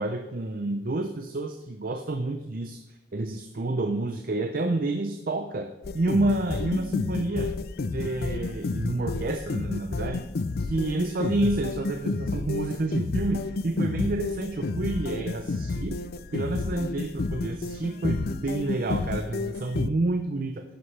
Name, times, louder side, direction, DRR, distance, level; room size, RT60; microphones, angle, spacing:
voice 1, 0.0-2.8 3.1-5.7 5.9-7.5 7.9-10.2 10.6-16.0 16.3-20.6, right 2 dB, 50° right, 7 dB, 0.6 m, -29 dB
sound 1, 5.8-19.9, left 3 dB, 55° left, 0.5 m, -30 dB
12.0 x 9.4 x 3.3 m, 1.0 s
head